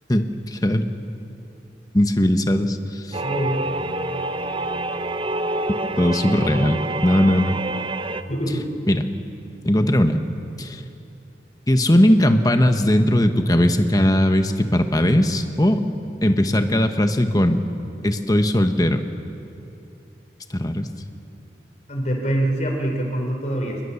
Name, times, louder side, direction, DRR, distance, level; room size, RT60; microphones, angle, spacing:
voice 1, 0.1-0.9 1.9-3.2 6.0-7.6 8.9-9.1 9.6-10.2 10.6-10.8 11.7-15.8 16.2-17.6 18.0-19.0 20.5-20.9, left 1 dB, 20° left, 7 dB, 1.2 m, -19 dB
sound 1, 3.1-8.2, right 2 dB, 30° right, 0.7 m, -27 dB
voice 2, 3.2-3.7 8.3-8.6 21.9-23.8, right 1 dB, 40° left, 2 dB, 4.2 m, -24 dB
26.0 x 21.5 x 7.2 m, 2.8 s
head